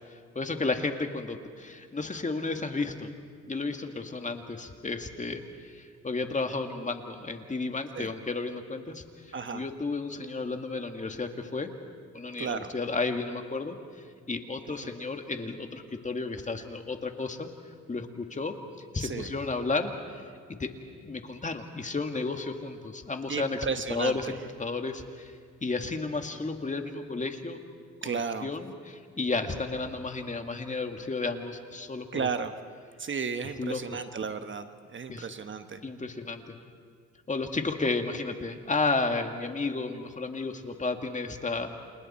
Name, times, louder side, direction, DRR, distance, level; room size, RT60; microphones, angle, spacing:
voice 1, 0.1-3.1 3.5-9.0 9.5-11.7 12.1-13.8 14.3-17.5 17.9-18.5 18.9-20.2 20.6-20.7 21.0-25.3 25.6-27.6 28.0-32.3 33.4-33.8 35.1-35.3 35.8-36.5 37.3-41.8, left 3 dB, 25° left, 5 dB, 2.0 m, -32 dB
voice 2, 9.3-9.6 12.4-12.7 14.8-14.9 19.0-19.3 23.3-24.3 28.0-28.5 32.1-32.5 33.0-35.8, right 5 dB, 40° right, 9 dB, 1.2 m, -33 dB
29.0 x 29.0 x 4.3 m, 2.2 s
cardioid pair, 90°, 30 cm